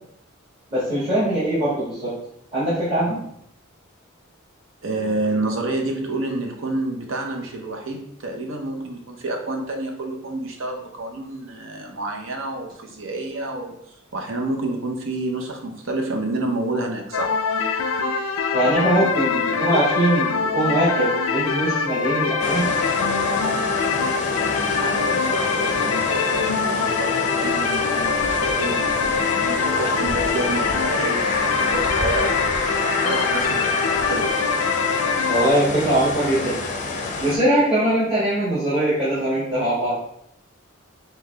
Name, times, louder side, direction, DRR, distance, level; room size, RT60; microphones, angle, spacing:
voice 1, 0.7-2.1 2.5-3.2 18.5-22.7 35.3-36.6 37.2-40.0, right 1 dB, 25° right, -12 dB, 1.6 m, -21 dB
voice 2, 4.8-17.3 24.4-33.7 34.1-34.4, right 2 dB, 70° right, 2 dB, 0.8 m, -29 dB
sound 1, 17.1-35.5, left 5 dB, 85° left, 0.5 m, -23 dB
sound 2, 22.4-37.4, left 3 dB, 35° left, 0.5 m, -27 dB
5.4 x 2.3 x 3.3 m, 0.74 s
head